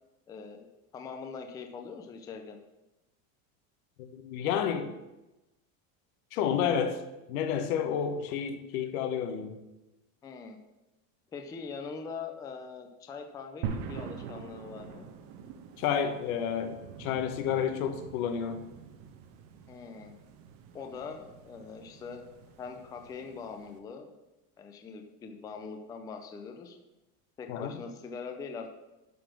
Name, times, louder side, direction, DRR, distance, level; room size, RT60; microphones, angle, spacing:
voice 1, 0.3-0.7 0.9-2.6 10.2-10.6 11.3-15.1 19.7-20.1 20.7-22.3 22.6-24.1 24.6-26.8 27.4-28.7, left 5 dB, 10° left, 5 dB, 0.4 m, -42 dB
voice 2, 4.1-4.9 6.3-7.0 7.3-9.6 15.8-18.6 27.5-27.7, left 8 dB, 85° left, 8 dB, 1.3 m, -30 dB
sound 1, 13.6-23.8, right 6 dB, 65° right, 1.1 m, -44 dB
11.5 x 4.1 x 6.2 m, 1.0 s
cardioid pair, 165°, 41 cm